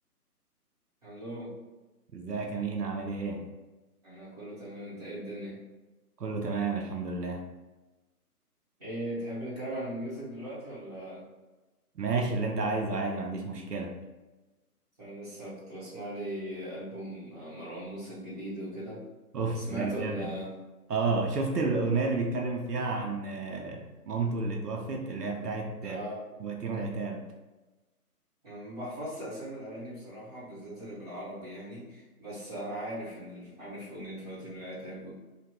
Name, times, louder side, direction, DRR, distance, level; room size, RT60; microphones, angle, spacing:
voice 1, 1.0-1.5 4.0-5.6 8.8-11.2 15.0-19.0 19.5-20.5 25.8-26.2 28.4-35.2, right 1 dB, 25° right, -10 dB, 1.1 m, -39 dB
voice 2, 2.1-3.5 6.2-7.4 12.0-13.9 19.3-20.3 20.9-26.0 26.4-27.2, right 3 dB, 85° right, 2 dB, 0.6 m, -31 dB
2.7 x 2.1 x 3.4 m, 1.1 s
figure-of-eight pair, 155°, 46 cm